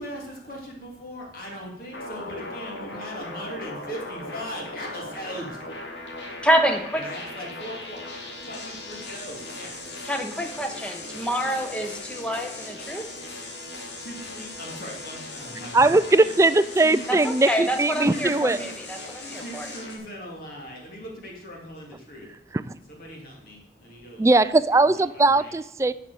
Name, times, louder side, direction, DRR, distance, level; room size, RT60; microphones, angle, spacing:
voice 1, 0.0-5.6 6.9-8.0 8.4-9.9 14.0-16.3 16.8-17.2 17.5-17.7 18.0-18.7 19.3-22.3 22.9-24.3 24.7-25.5, equal, 50° left, -1 dB, 2.7 m, -39 dB
sound 1, 1.9-20.0, left 2 dB, 80° left, 2.5 m, -38 dB
voice 2, 6.4-7.0 10.1-13.0 17.1-19.7, right 1 dB, 5° left, 5 dB, 1.1 m, -27 dB
voice 3, 15.7-18.6 22.6-22.8 24.2-25.9, right 2 dB, 15° right, 15 dB, 0.3 m, -19 dB
11.0 x 5.9 x 6.9 m, 0.79 s
head